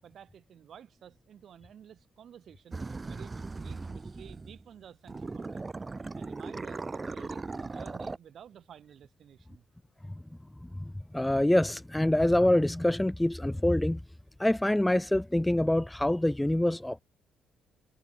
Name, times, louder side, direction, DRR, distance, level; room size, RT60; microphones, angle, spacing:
voice 1, 0.0-5.7 6.2-9.6, right 9 dB, 60° right, 6.9 m, -52 dB
sound 1, 2.7-4.7 5.1-8.2, right 3 dB, 25° right, 3.5 m, -38 dB
voice 2, 11.1-14.0 14.4-17.0, left 1 dB, 10° left, 0.9 m, -25 dB
cardioid pair, 90°, 0 cm